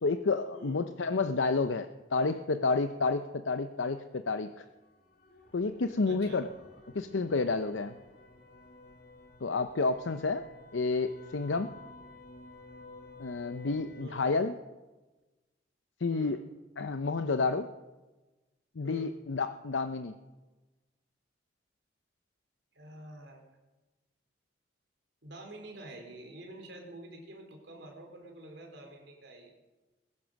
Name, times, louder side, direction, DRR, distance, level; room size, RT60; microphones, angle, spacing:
voice 1, 0.0-4.6 5.5-6.5 6.9-7.9 9.4-10.4 10.7-11.7 13.2-14.6 16.0-16.4 16.8-17.7 18.8-20.2, left 3 dB, 90° left, 9 dB, 0.7 m, -30 dB
voice 2, 0.5-0.9 6.1-6.4 14.0-14.3 16.1-16.4 18.8-19.1 22.7-23.4 25.2-29.5, right 1 dB, 70° right, 2 dB, 3.8 m, -47 dB
sound 1, 4.5-14.1, left 2 dB, 55° left, 2.1 m, -53 dB
20.5 x 10.5 x 6.4 m, 1.2 s
head